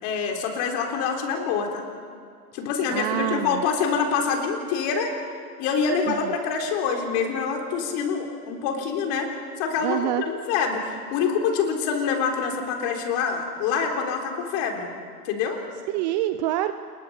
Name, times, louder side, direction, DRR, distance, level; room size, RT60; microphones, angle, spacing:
voice 1, 0.0-1.8 2.5-5.1 5.6-9.3 9.6-14.9 15.3-15.6, left 6 dB, 40° left, 3 dB, 3.8 m, -26 dB
voice 2, 2.9-3.6 6.1-6.3 9.8-10.2 15.9-16.7, right 14 dB, 30° right, 11 dB, 0.5 m, -26 dB
28.5 x 21.0 x 5.5 m, 2.2 s
hypercardioid pair, 130°, 48 cm